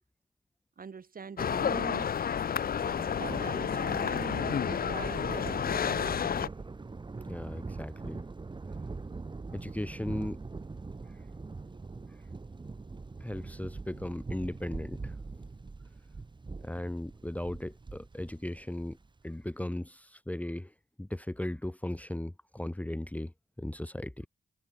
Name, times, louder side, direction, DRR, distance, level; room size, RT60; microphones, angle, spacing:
voice 1, 0.8-2.3 3.2-6.1, right 5 dB, 60° right, 5.1 m, -43 dB
sound 1, 1.4-6.5, left 8 dB, 65° left, 0.9 m, -30 dB
Thunder, 2.6-19.2, right 3 dB, 30° right, 0.9 m, -42 dB
voice 2, 7.3-8.2 9.5-10.4 13.2-15.2 16.6-19.0 19.2-20.7 21.0-24.3, left 1 dB, 10° left, 1.2 m, -37 dB
cardioid pair, 55°, 16 cm